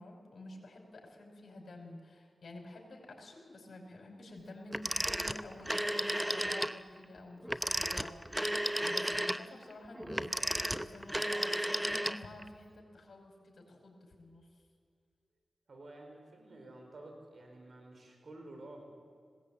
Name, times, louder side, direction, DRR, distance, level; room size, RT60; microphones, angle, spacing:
voice 1, 0.0-14.5, left 2 dB, 60° left, 1 dB, 5.2 m, -50 dB
Telephone, 4.7-6.8 7.4-12.5, equal, 10° right, 0.8 m, -33 dB
voice 2, 15.7-18.8, right 2 dB, 65° right, 3 dB, 5.1 m, -51 dB
20.0 x 17.5 x 8.6 m, 2.2 s
cardioid pair, 45°, 0 cm